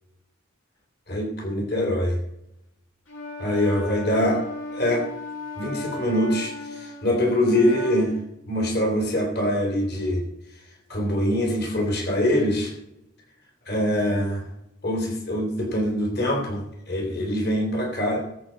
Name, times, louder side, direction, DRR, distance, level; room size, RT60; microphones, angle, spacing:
voice 1, 1.1-2.2 3.4-4.4 4.7-5.0 5.6-8.1 8.5-10.2 10.9-12.7 13.6-14.5 14.8-18.2, left 1 dB, 55° left, 1 dB, 3.4 m, -24 dB
Wind instrument woodwind instrument, 3.1-8.2, left 3 dB, 80° left, 6.0 m, -36 dB
21.0 x 8.1 x 4.5 m, 0.85 s
head